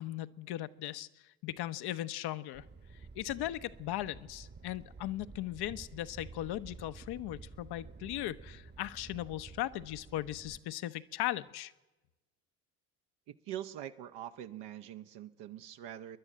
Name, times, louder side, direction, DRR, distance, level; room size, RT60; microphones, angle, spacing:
voice 1, 0.0-2.7 3.1-11.7, left 14 dB, 50° left, 0.9 m, -38 dB
Thunder, 2.5-10.6, right 4 dB, 20° right, 1.2 m, -51 dB
voice 2, 13.3-16.2, right 11 dB, 55° right, 1.0 m, -44 dB
28.0 x 11.0 x 8.9 m
hypercardioid pair, 60°, 49 cm